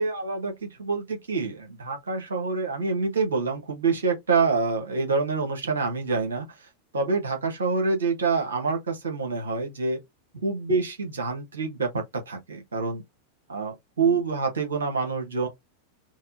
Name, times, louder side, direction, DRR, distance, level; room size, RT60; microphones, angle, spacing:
voice 1, 0.0-6.5 6.9-10.0 10.4-13.0 13.5-15.5, right 4 dB, 70° right, 1.0 m, -26 dB
4.0 x 2.0 x 2.7 m
figure-of-eight pair, 90°, 0 cm